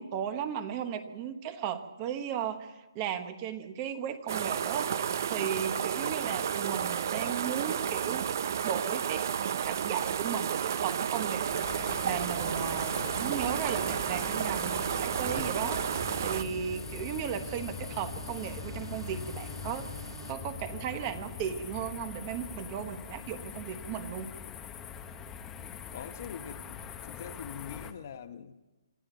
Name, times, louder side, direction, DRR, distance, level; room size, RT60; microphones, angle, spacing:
voice 1, 0.0-8.3 8.6-24.3, right 8 dB, 20° right, 10 dB, 1.0 m, -36 dB
sound 1, 4.3-16.4, right 8 dB, 40° right, 0.7 m, -32 dB
voice 2, 6.0-6.4 25.9-28.5, left 8 dB, 35° left, 10 dB, 1.1 m, -44 dB
sound 2, 10.9-20.3, right 3 dB, 85° right, 1.5 m, -46 dB
sound 3, 11.5-27.9, left 7 dB, 10° left, 0.9 m, -42 dB
26.0 x 12.5 x 9.3 m, 1.1 s
hypercardioid pair, 170°, 2 cm